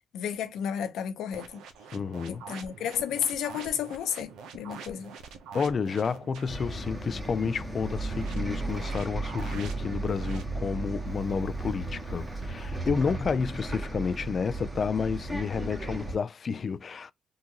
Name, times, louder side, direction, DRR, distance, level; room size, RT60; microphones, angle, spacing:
voice 1, 0.1-1.5 2.3-5.1, left 9 dB, 80° left, 0.9 m, -32 dB
sound 1, 1.3-6.6 7.9-10.4, right 5 dB, 85° right, 0.7 m, -45 dB
voice 2, 1.9-2.4 5.5-17.1, left 5 dB, 45° left, 0.3 m, -30 dB
Bus, 6.5-16.1, right 2 dB, 15° right, 1.1 m, -35 dB
3.7 x 2.5 x 2.9 m
cardioid pair, 90°, 0 cm